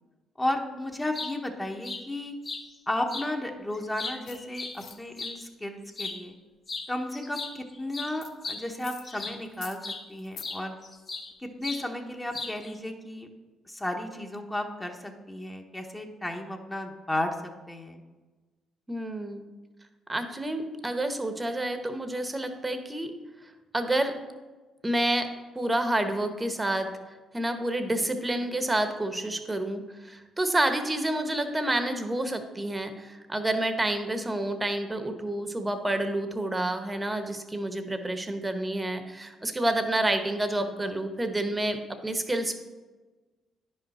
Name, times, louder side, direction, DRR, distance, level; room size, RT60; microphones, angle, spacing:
voice 1, 0.4-2.3 2.9-6.3 6.9-9.8 10.1-10.7 11.4-13.3 13.6-17.3 17.7-18.0 40.8-41.0, left 1 dB, 15° left, 2 dB, 1.2 m, -33 dB
sound 1, 0.9-1.3 1.8-2.0 2.4-2.6 3.1-3.3 3.7-5.4 5.9-6.2 6.7-6.9 7.1-9.5 9.8-10.0 10.4-11.3 11.6-11.8 12.3-12.7, left 3 dB, 40° left, 1.3 m, -37 dB
sound 2, 4.2-4.4 4.7-4.9 8.2-8.3 8.7-9.1 9.4-9.8 10.2-10.4, left 7 dB, 70° left, 0.7 m, -44 dB
voice 2, 18.9-19.4 20.1-23.1 23.7-24.2 24.8-25.3 25.5-26.9 27.3-42.6, right 1 dB, 20° right, 7 dB, 1.1 m, -29 dB
9.9 x 5.5 x 4.3 m, 1.3 s
supercardioid pair, 60°, 0 cm